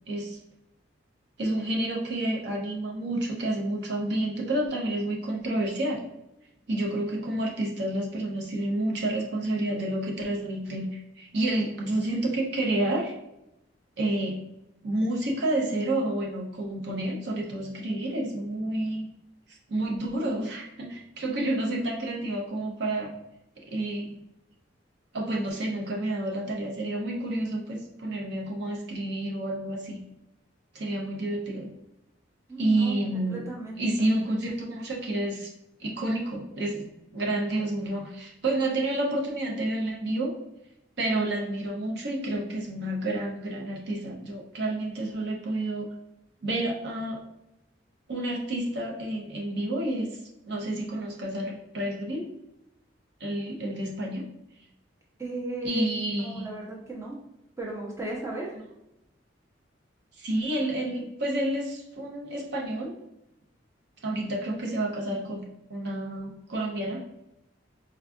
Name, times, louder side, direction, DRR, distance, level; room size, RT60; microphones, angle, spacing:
voice 1, 0.1-0.4 1.4-6.0 6.7-13.1 14.0-14.4 14.8-19.1 19.5-23.1 23.6-24.1 25.1-30.0 30.7-31.7 32.6-33.4 33.8-35.5 35.8-36.9 37.1-40.3 41.0-45.9 46.4-47.2 48.1-50.2 50.5-52.3 53.2-54.2 55.6-56.5 60.2-63.0 64.0-67.2, right 1 dB, 55° right, -1 dB, 0.5 m, -29 dB
voice 2, 32.5-34.4 55.2-55.8 56.2-57.2 57.6-58.5, right 1 dB, 15° right, -3 dB, 0.6 m, -36 dB
4.4 x 2.3 x 2.4 m, 0.88 s
head